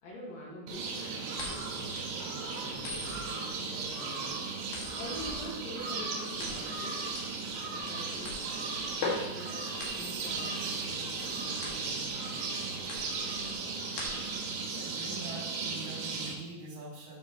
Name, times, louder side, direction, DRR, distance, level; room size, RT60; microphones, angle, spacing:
voice 1, 0.0-7.0 7.7-8.3 9.1-9.7 9.9-12.6, left 1 dB, 75° left, -5 dB, 1.5 m, -46 dB
sound 1, 0.7-16.3, right 4 dB, 85° right, 3.9 m, -36 dB
sound 2, 1.4-14.5, left 3 dB, 55° left, 3.0 m, -42 dB
sound 3, 9.4-12.8 13.2-13.3, right 4 dB, 70° right, 2.5 m, -48 dB
voice 2, 14.4-17.2, right 2 dB, 25° right, -8 dB, 1.0 m, -44 dB
13.0 x 6.0 x 3.0 m, 1.1 s
omnidirectional pair, 5.9 m